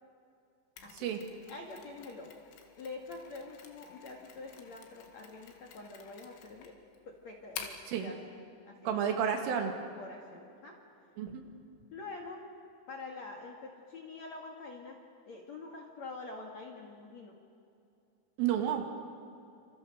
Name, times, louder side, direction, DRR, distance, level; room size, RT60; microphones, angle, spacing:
Mechanisms, 0.8-7.9, left 7 dB, 90° left, 4.5 m, -50 dB
voice 1, 1.5-2.4 2.8-6.8 7.1-8.2 8.7-9.1 10.0-10.8 11.9-12.4 12.9-15.0 15.2-17.4, left 3 dB, 50° left, 0 dB, 2.2 m, -46 dB
voice 2, 8.9-9.7 11.2-11.4 18.4-18.9, right 8 dB, 85° right, 4 dB, 4.8 m, -31 dB
27.5 x 27.5 x 6.7 m, 2.6 s
omnidirectional pair, 5.6 m